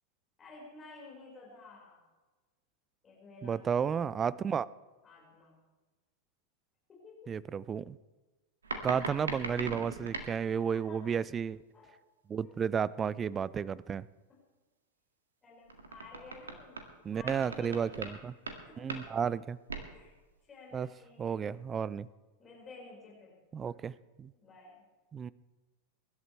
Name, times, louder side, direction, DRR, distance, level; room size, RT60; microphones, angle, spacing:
voice 1, 0.4-2.1 3.0-3.6 5.0-5.6 6.9-7.3 10.6-11.1 11.7-12.0 12.4-12.6 14.3-14.4 15.4-17.9 18.5-19.0 19.9-20.1 20.4-21.5 22.4-23.7 24.3-24.8, left 3 dB, 20° left, -4 dB, 5.0 m, -53 dB
voice 2, 3.4-4.7 7.3-8.0 8.8-11.6 12.3-14.1 17.0-18.3 18.8-19.6 20.7-20.9 21.2-22.1 23.5-24.3 25.1-25.3, right 7 dB, 20° right, 22 dB, 0.4 m, -32 dB
sound 1, 8.6-10.4 15.7-16.9 17.1-18.2 18.5-18.6 18.9-19.2 19.7-19.9 20.3-20.4, right 3 dB, 70° right, 1.7 m, -40 dB
24.0 x 12.0 x 3.3 m, 1.3 s
figure-of-eight pair, 90°, 0 cm